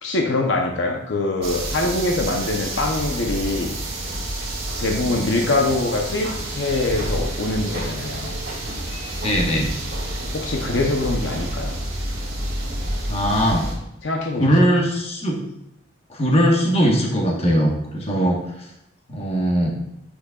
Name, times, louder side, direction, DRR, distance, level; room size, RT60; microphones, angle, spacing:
voice 1, 0.0-3.8 4.8-8.4 10.3-11.8 14.0-14.7, left 2 dB, 70° left, 2 dB, 0.8 m, -24 dB
sound 1, 1.4-13.7, right 1 dB, 50° right, 1.9 m, -29 dB
voice 2, 9.2-9.7 13.1-13.7 14.4-15.4 16.1-18.4 19.1-19.7, equal, 30° left, 0 dB, 1.2 m, -20 dB
8.1 x 6.3 x 2.3 m, 0.81 s
head